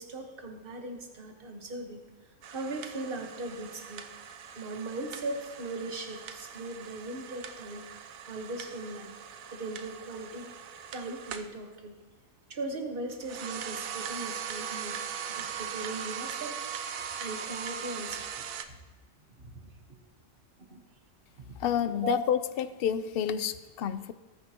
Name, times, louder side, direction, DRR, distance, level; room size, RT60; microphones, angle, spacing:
voice 1, 0.0-2.0 2.5-4.0 4.5-7.9 8.3-9.1 9.5-10.5 10.9-12.0 12.5-15.0 15.3-16.6 17.2-18.3 18.6-18.7 19.5-19.7 20.7-20.8 21.5-21.6 22.0-22.2, right 2 dB, 40° right, 4 dB, 1.4 m, -38 dB
sound 1, 2.4-11.5 13.1-18.7, right 8 dB, 85° right, 1.1 m, -40 dB
voice 2, 21.6-24.1, left 9 dB, 60° left, 13 dB, 0.6 m, -29 dB
19.0 x 9.6 x 2.9 m, 1.3 s
omnidirectional pair, 1.4 m